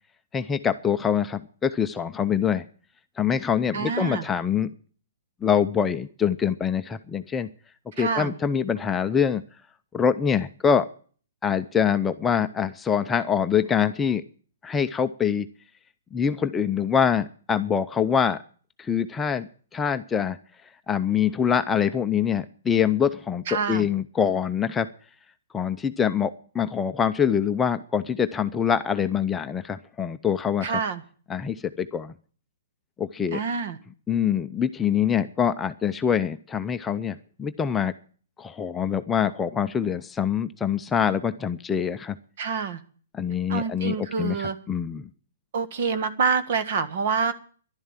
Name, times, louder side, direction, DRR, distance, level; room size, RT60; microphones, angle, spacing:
voice 1, 0.3-2.7 3.2-4.7 5.4-7.5 8.0-9.4 9.9-10.9 11.4-14.2 14.6-15.5 16.1-18.4 18.8-19.5 19.7-20.4 20.9-24.9 25.5-30.8 31.3-32.1 33.0-33.4 34.1-37.9 38.4-42.2 43.1-45.1, left 7 dB, 10° left, 8 dB, 0.6 m, -24 dB
voice 2, 3.7-4.2 8.0-8.3 23.5-23.9 30.6-31.0 33.3-33.8 42.4-42.8 43.5-44.6 45.5-47.3, right 5 dB, 55° right, 15 dB, 1.6 m, -26 dB
11.5 x 11.0 x 7.4 m, 0.43 s
hypercardioid pair, 155°, 0 cm